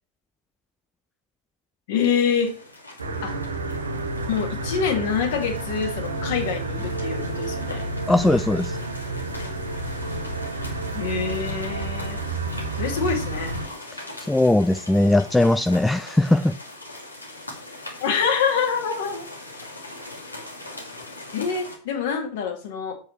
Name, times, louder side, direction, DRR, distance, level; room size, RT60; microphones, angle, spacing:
voice 1, 1.9-2.6 3.2-3.3 4.3-7.8 10.9-12.2 12.7-13.5 18.0-19.3 21.3-22.9, left 6 dB, 55° left, 2 dB, 2.4 m, -25 dB
sound 1, 2.2-21.8, left 2 dB, 85° left, 2.7 m, -41 dB
sound 2, 3.0-13.7, right 2 dB, 75° right, 1.2 m, -30 dB
voice 2, 8.1-8.8 13.9-16.6, left 1 dB, 5° left, 12 dB, 0.3 m, -20 dB
8.6 x 8.2 x 3.3 m, 0.40 s
figure-of-eight pair, 90°, 0 cm